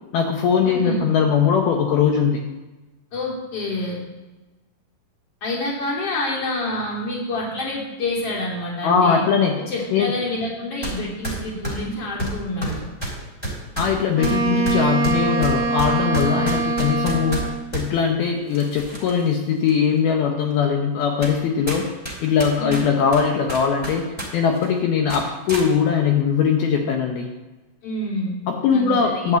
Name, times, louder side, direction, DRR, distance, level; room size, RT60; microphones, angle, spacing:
voice 1, 0.1-2.4 8.8-9.7 9.9-10.1 13.8-21.9 22.2-27.3 28.5-29.4, left 6 dB, 75° left, 2 dB, 2.6 m, -20 dB
voice 2, 0.6-1.0 3.1-4.0 5.4-9.2 9.7-12.9 22.6-22.9 27.8-28.4 28.7-29.4, left 2 dB, 40° left, -4 dB, 3.3 m, -27 dB
sound 1, 10.8-11.0 11.2-17.9 18.5-19.3 19.7-19.8 20.5-20.6 21.2-21.4 21.7-24.3 24.5-24.7 25.1-25.7, right 1 dB, 10° left, 1.8 m, -29 dB
Wind instrument woodwind instrument, 14.1-17.7, right 4 dB, 75° right, 0.8 m, -23 dB
11.0 x 5.1 x 8.0 m, 1.1 s
omnidirectional pair, 4.8 m